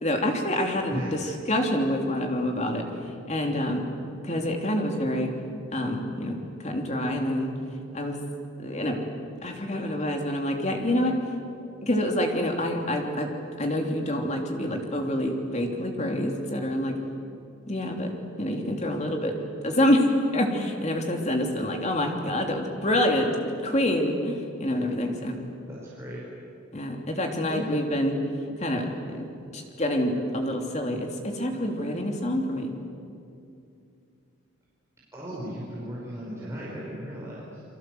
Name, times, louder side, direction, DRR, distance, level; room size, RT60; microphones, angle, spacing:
voice 1, 0.0-1.2 1.5-2.9 3.3-3.8 4.2-5.3 5.7-6.3 6.6-7.5 7.9-8.2 8.6-9.0 9.4-11.1 11.8-13.3 13.6-16.9 17.7-19.3 19.6-25.4 26.7-28.2 28.6-28.9 29.1-29.2 29.5-32.7, left 1 dB, 35° left, 3 dB, 3.1 m, -27 dB
voice 2, 25.7-26.3 27.1-27.2 27.5-27.7 35.1-37.6, equal, 15° right, -7 dB, 5.4 m, -36 dB
29.5 x 23.0 x 7.9 m, 2.6 s
head